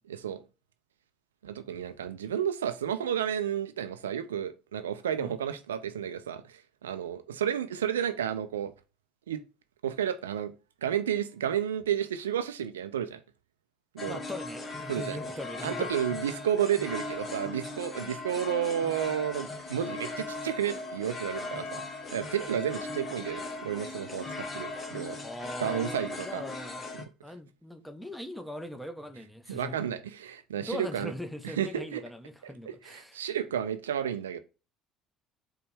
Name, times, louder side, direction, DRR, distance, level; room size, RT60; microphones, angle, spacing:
voice 1, 0.1-0.4 1.4-8.7 9.3-9.4 9.8-10.5 10.8-13.2 13.9-14.2 14.9-15.2 15.6-21.8 22.1-25.2 25.6-26.4 29.5-31.1 31.4-32.0 32.7-34.4, right 9 dB, 90° right, 0.3 m, -31 dB
sound 1, 14.0-27.1, left 3 dB, 35° left, 0.8 m, -38 dB
voice 2, 14.1-15.9 19.8-20.0 25.2-26.9 27.2-29.8 30.6-33.2, left 1 dB, ahead, 0.6 m, -40 dB
4.5 x 2.2 x 3.2 m
hypercardioid pair, 65°, 0 cm